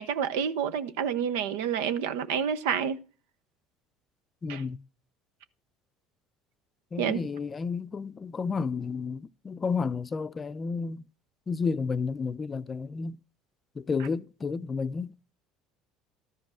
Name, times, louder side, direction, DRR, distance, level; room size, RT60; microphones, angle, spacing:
voice 1, 0.0-3.0 4.5-4.6 7.0-7.2, right 8 dB, 85° right, 0.7 m, -29 dB
voice 2, 4.4-4.8 6.9-11.0 11.5-13.2 13.8-15.3, left 5 dB, 30° left, 0.5 m, -31 dB
12.5 x 5.2 x 6.3 m
supercardioid pair, 95°, 0 cm